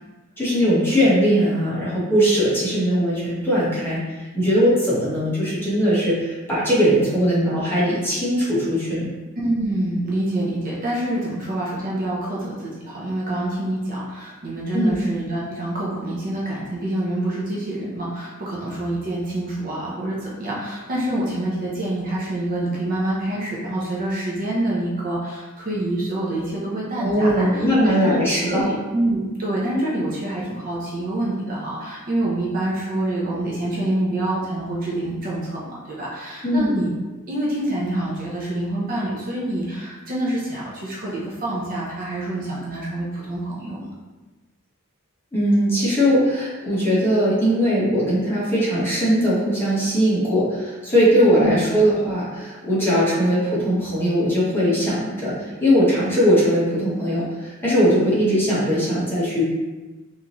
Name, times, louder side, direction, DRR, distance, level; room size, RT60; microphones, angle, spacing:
voice 1, 0.4-9.1 14.7-14.9 27.0-28.7 36.4-36.7 45.3-59.4, equal, 10° left, -9 dB, 1.1 m, -20 dB
voice 2, 9.4-28.2 28.5-36.9 37.3-43.9 51.4-51.5, right 1 dB, 40° right, -5 dB, 0.7 m, -26 dB
3.6 x 2.7 x 2.9 m, 1.2 s
head